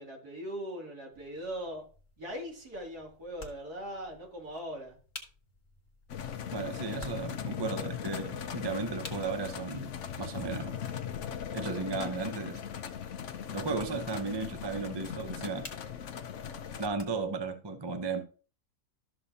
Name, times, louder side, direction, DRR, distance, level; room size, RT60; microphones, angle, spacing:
voice 1, 0.0-1.9 2.2-5.0, equal, 65° right, -1 dB, 3.3 m, -40 dB
sound 1, 1.1-17.5, left 2 dB, 30° left, 1.7 m, -54 dB
sound 2, 6.1-16.9, left 8 dB, 55° left, 0.9 m, -39 dB
voice 2, 6.5-10.8 11.5-12.6 13.5-15.7 16.8-18.2, right 4 dB, 25° right, 6 dB, 0.6 m, -35 dB
13.0 x 6.7 x 2.8 m, 0.39 s
omnidirectional pair, 1.8 m